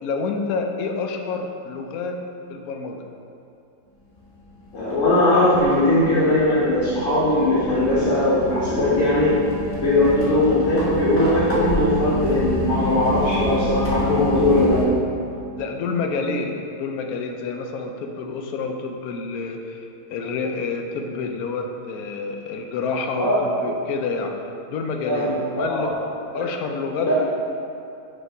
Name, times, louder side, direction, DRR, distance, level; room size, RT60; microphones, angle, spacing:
voice 1, 0.0-2.2 2.5-3.0 10.1-10.2 15.6-24.3 24.7-25.9 26.3-27.1, left 4 dB, 65° left, 3 dB, 1.0 m, -28 dB
sound 1, 4.2-4.3 4.5-14.9, left 1 dB, 10° left, 1.0 m, -29 dB
voice 2, 4.7-9.4 9.8-14.9 23.2-23.4 25.0-25.9 26.3-26.4 27.0-27.1, left 1 dB, 50° left, -9 dB, 1.3 m, -19 dB
5.3 x 4.3 x 4.9 m, 2.7 s
omnidirectional pair, 1.8 m